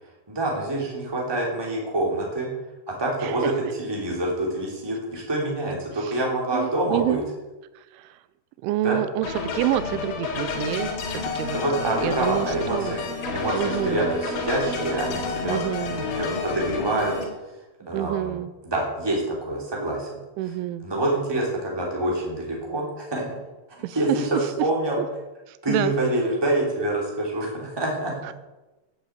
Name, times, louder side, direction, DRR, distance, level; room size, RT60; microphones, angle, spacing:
voice 1, 0.3-2.5 2.9-3.5 3.8-7.2 8.8-9.0 11.5-13.0 13.3-15.6 15.8-17.1 17.9-18.4 18.6-20.1 20.8-23.3 23.9-25.0 25.6-28.3, right 1 dB, 5° right, -2 dB, 2.3 m, -26 dB
voice 2, 6.5-7.2 7.8-8.2 8.6-13.0 13.5-14.1 15.4-16.1 17.9-18.5 20.4-20.9 23.8-24.5 25.5-25.9 28.2-28.3, right 14 dB, 85° right, 15 dB, 3.0 m, -28 dB
sound 1, 9.2-17.2, left 4 dB, 80° left, 4.3 m, -30 dB
11.5 x 7.4 x 8.2 m, 1.1 s
omnidirectional pair, 5.4 m